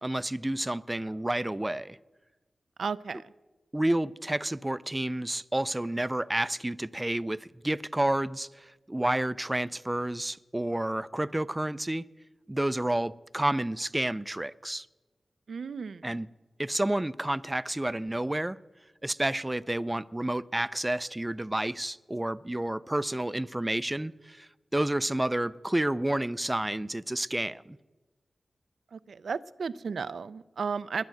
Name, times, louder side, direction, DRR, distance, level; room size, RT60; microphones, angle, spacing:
voice 1, 0.0-2.0 3.7-12.0 12.5-14.9 16.0-16.3 16.6-18.6 19.0-27.8, right 1 dB, 15° right, 0.4 m, -30 dB
voice 2, 2.8-3.2 15.5-16.1 28.9-31.0, right 5 dB, 85° right, 0.4 m, -34 dB
21.0 x 8.2 x 7.7 m
wide cardioid pair, 70°, 0 cm